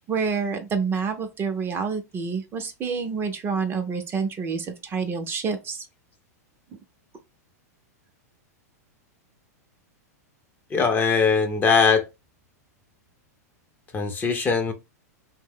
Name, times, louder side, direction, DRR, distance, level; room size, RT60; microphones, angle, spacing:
voice 1, 0.1-5.9, right 5 dB, 25° right, 0.5 m, -28 dB
voice 2, 10.7-12.0 13.9-14.7, left 5 dB, 20° left, 0.6 m, -21 dB
2.6 x 2.0 x 3.5 m
hypercardioid pair, 115°, 9 cm